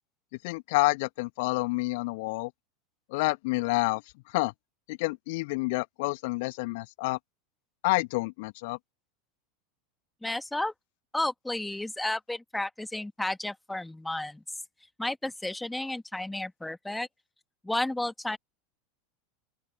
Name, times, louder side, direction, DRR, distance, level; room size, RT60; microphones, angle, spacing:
voice 1, 0.4-2.5 3.1-4.0 4.3-4.5 4.9-7.2 7.8-8.8, left 25 dB, 55° left, 1.8 m, -28 dB
voice 2, 10.2-10.7 11.1-14.4 15.0-17.1 17.6-18.4, left 1 dB, 5° left, 2.1 m, -32 dB
open air
figure-of-eight pair, 80°, 0 cm